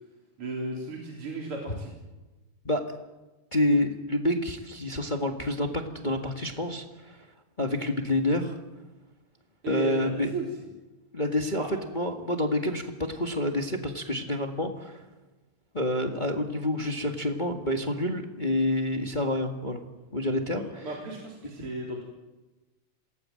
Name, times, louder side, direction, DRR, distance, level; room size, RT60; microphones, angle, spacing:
voice 1, 0.4-1.9 9.6-10.5 11.6-11.7 20.5-22.0, right 2 dB, 40° right, -1 dB, 4.5 m, -35 dB
voice 2, 2.6-3.0 3.5-7.2 7.6-8.6 9.7-10.3 11.1-15.0 15.7-19.8 20.1-20.9, left 1 dB, 20° left, 4 dB, 1.3 m, -28 dB
27.5 x 19.5 x 7.8 m, 1.1 s
omnidirectional pair, 3.7 m